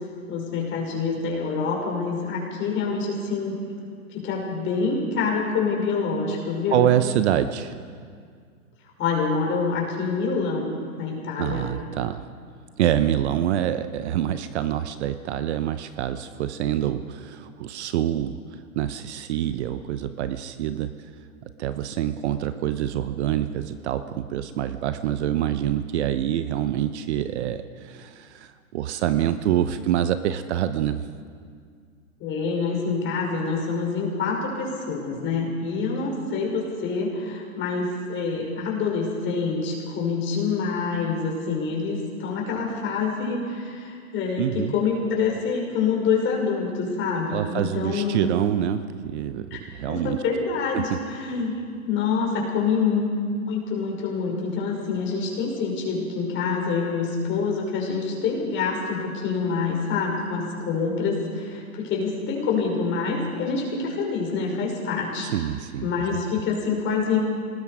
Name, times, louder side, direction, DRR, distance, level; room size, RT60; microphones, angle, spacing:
voice 1, 0.3-3.6 4.1-6.9 9.0-11.7 32.2-48.3 49.5-49.6 49.9-51.6 51.8-53.0 53.5-65.3 65.8-67.2, left 5 dB, 25° left, -1 dB, 5.9 m, -26 dB
voice 2, 6.7-7.8 11.4-12.2 12.8-21.1 21.6-31.1 44.4-44.7 47.3-50.2 50.9-51.0 65.2-66.2, right 11 dB, 50° right, 11 dB, 1.0 m, -26 dB
26.5 x 19.5 x 5.0 m, 2.1 s
hypercardioid pair, 130°, 43 cm